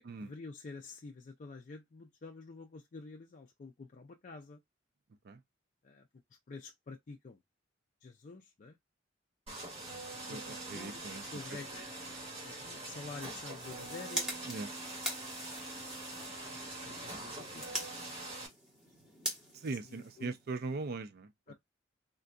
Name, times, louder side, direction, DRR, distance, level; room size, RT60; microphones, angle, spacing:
voice 1, 0.0-4.6 5.8-6.1 6.5-7.4 8.0-8.8 10.3-11.0 11.3-11.8 12.4-14.3 16.3-17.7 19.9-20.3 21.5-21.6, left 3 dB, 40° left, 0.4 m, -48 dB
sound 1, 9.5-18.5, right 2 dB, 30° right, 1.7 m, -44 dB
voice 2, 10.3-11.6 14.5-14.7 19.5-21.5, right 3 dB, 55° right, 0.4 m, -40 dB
sound 2, 13.4-20.7, equal, 5° right, 1.2 m, -43 dB
3.7 x 2.6 x 2.2 m
head